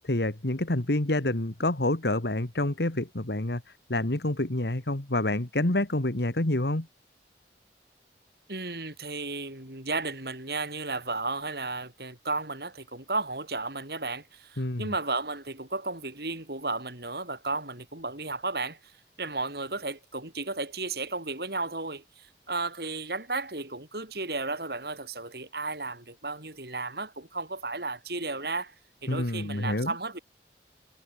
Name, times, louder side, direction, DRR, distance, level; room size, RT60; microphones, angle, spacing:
voice 1, 0.0-3.6 3.9-6.9 14.6-14.9 29.1-29.9, left 1 dB, 70° left, 1.9 m, -28 dB
voice 2, 8.5-18.9 19.2-28.7 29.0-30.2, right 3 dB, 65° right, 5.8 m, -34 dB
head